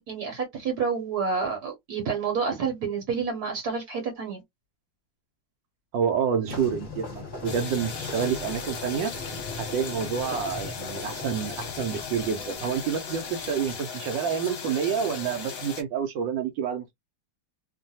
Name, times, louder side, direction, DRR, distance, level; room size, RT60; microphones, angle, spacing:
voice 1, 0.0-4.4 6.5-6.6 9.3-9.4, right 5 dB, 65° right, 1.2 m, -29 dB
voice 2, 5.9-9.1 9.6-16.9, right 7 dB, 80° right, 1.3 m, -28 dB
sound 1, 6.5-13.8, left 3 dB, 30° left, 1.2 m, -40 dB
sound 2, 7.4-15.8, left 6 dB, 55° left, 1.1 m, -37 dB
3.0 x 2.2 x 2.7 m
omnidirectional pair, 2.0 m